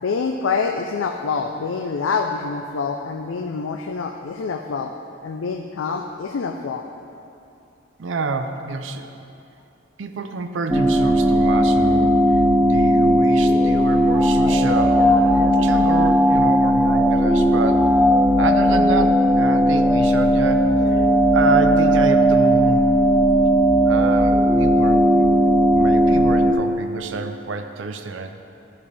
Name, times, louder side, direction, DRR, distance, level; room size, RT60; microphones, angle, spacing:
voice 1, 0.0-4.9 5.2-6.8, left 5 dB, 80° left, 4 dB, 0.4 m, -26 dB
voice 2, 8.0-9.1 10.0-17.9 18.4-21.1 21.3-22.9 23.9-25.3 25.7-28.3, right 4 dB, 70° right, 7 dB, 0.5 m, -27 dB
sound 1, 10.7-26.5, equal, 5° right, 0.4 m, -17 dB
12.0 x 5.3 x 3.4 m, 2.6 s
head